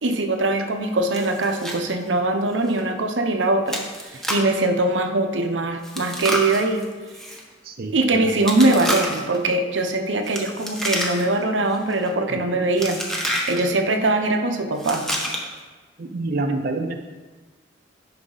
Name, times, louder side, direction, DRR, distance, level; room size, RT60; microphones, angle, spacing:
voice 1, 0.0-3.8 4.1-6.9 7.9-13.0 13.5-15.1, right 2 dB, 90° right, 5 dB, 0.8 m, -22 dB
Chewing mastication, 1.1-1.8 2.1-2.2 2.7-2.8 3.7-4.6 5.8-7.4 8.4-9.4 10.2-11.4 11.7-12.1 12.8-13.6 14.8-15.6, equal, 5° left, 1.1 m, -28 dB
voice 2, 7.6-8.4 12.3-12.7 16.0-16.9, right 2 dB, 55° right, 4 dB, 0.6 m, -28 dB
9.9 x 5.9 x 3.9 m, 1.4 s
head